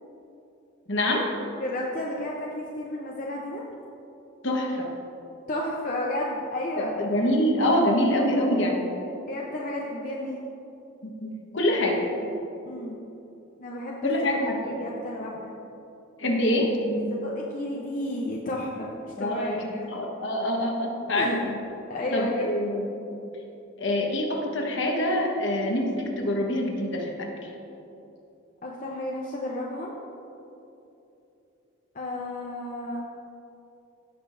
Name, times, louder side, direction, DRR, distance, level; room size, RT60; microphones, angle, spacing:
voice 1, 0.9-1.3 4.4-4.9 6.8-8.9 11.0-12.3 14.0-14.8 16.2-17.2 19.2-21.6 22.1-23.2 23.8-27.3, left 1 dB, 65° left, 0 dB, 1.2 m, -26 dB
voice 2, 1.6-3.6 5.5-7.0 9.3-10.4 12.6-13.0 13.6-14.1 14.6-15.5 17.1-18.9 19.2-19.9 21.2-21.4 21.9-22.5 28.6-29.9 31.9-33.1, left 1 dB, 40° left, -3 dB, 0.7 m, -32 dB
16.0 x 6.1 x 2.6 m, 2.9 s
head